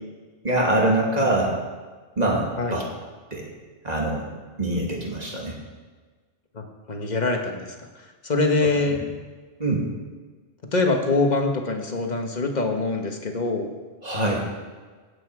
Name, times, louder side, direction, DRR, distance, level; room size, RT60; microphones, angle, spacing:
voice 1, 0.4-1.6 2.2-2.8 3.3-3.4 3.8-4.3 4.6-5.6 8.9-9.0 9.6-9.8 14.0-14.5, right 1 dB, 35° right, -2 dB, 2.5 m, -24 dB
voice 2, 6.5-7.7 8.2-9.0 10.7-13.7, left 3 dB, 35° left, 3 dB, 1.4 m, -24 dB
16.5 x 8.5 x 4.8 m, 1.4 s
omnidirectional pair, 1.3 m